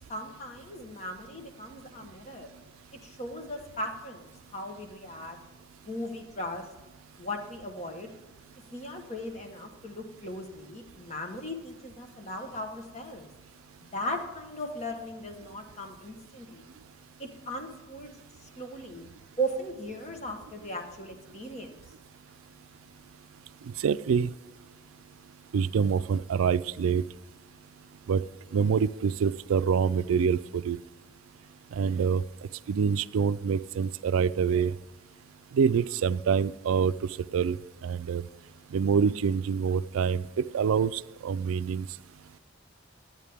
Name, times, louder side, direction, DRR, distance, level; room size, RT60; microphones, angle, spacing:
voice 1, 0.1-2.5 3.0-5.4 5.8-6.6 7.2-8.1 8.7-13.3 13.9-16.7 17.2-18.1 18.4-19.1 19.4-21.7, equal, 35° left, 4 dB, 1.1 m, -37 dB
voice 2, 23.8-24.3 25.5-27.0 28.1-28.2 28.5-30.8 31.7-32.2 32.7-34.7 35.5-36.9 37.3-37.6 37.8-38.2 38.7-41.9, right 6 dB, 90° right, 17 dB, 0.3 m, -26 dB
11.0 x 9.1 x 3.4 m, 1.2 s
head